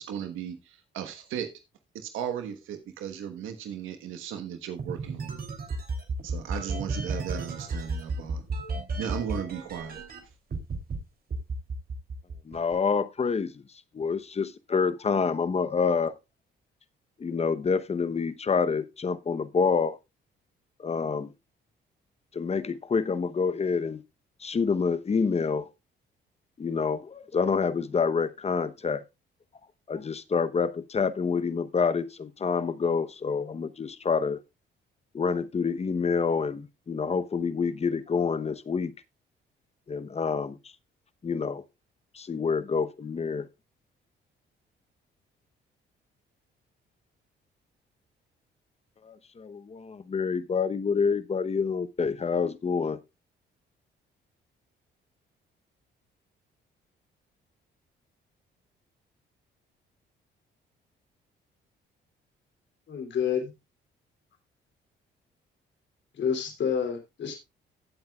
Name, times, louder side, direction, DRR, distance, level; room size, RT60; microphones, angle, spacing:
voice 1, 0.0-1.5 1.9-5.5 6.2-8.4 9.0-10.0, right 9 dB, 85° right, 1.3 m, -36 dB
sound 1, 4.8-10.2 10.5-11.0 11.3-12.8, right 3 dB, 50° right, 3.0 m, -33 dB
voice 2, 12.5-13.6 13.9-16.1 17.2-20.0 20.8-21.3 22.3-24.0 24.4-25.7 26.6-29.0 29.9-34.4 35.1-38.9 39.9-40.6 41.2-41.6 42.1-43.5 49.0-53.0, left 5 dB, 30° left, 0.9 m, -27 dB
voice 3, 62.9-63.5 66.2-67.4, left 7 dB, 65° left, 2.9 m, -28 dB
16.0 x 7.8 x 2.3 m
cardioid pair, 90°, 20 cm